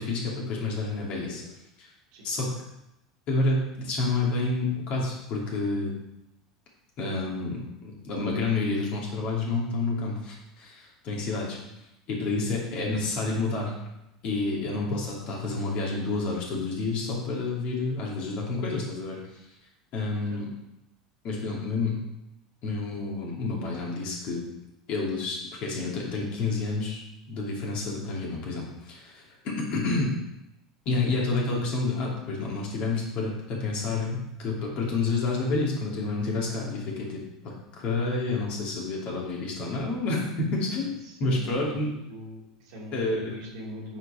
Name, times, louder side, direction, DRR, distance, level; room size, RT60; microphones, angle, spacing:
voice 1, 0.0-1.4 1.8-1.9 2.2-2.5 3.3-5.9 7.0-11.6 12.1-13.7 14.2-19.2 19.9-20.5 21.2-22.0 22.6-24.4 24.9-27.0 27.3-30.1 30.9-41.9 42.9-43.4, left 3 dB, 50° left, -2 dB, 2.6 m, -29 dB
voice 2, 40.8-41.8 42.1-44.0, left 1 dB, 65° right, -2 dB, 2.6 m, -42 dB
8.9 x 5.0 x 4.4 m, 0.88 s
figure-of-eight pair, 75°, 3 cm